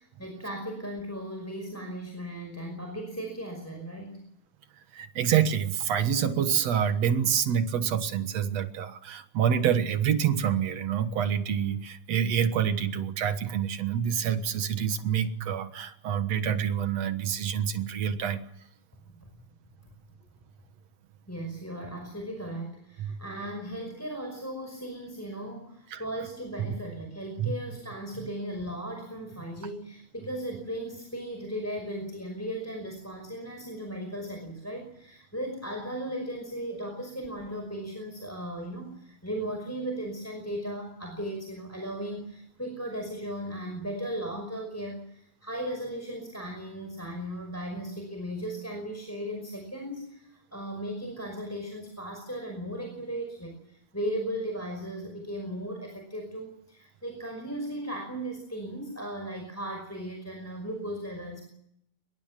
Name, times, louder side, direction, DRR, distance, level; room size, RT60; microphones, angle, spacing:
voice 1, 0.0-4.2 19.2-19.3 19.8-19.9 21.3-61.4, right 1 dB, 5° left, 3 dB, 5.2 m, -37 dB
voice 2, 4.9-18.4 23.0-23.2 25.9-26.0 26.6-26.8 27.4-27.5 28.2-28.3, right 8 dB, 65° right, 10 dB, 2.5 m, -27 dB
24.5 x 21.5 x 7.6 m, 0.73 s
omnidirectional pair, 3.4 m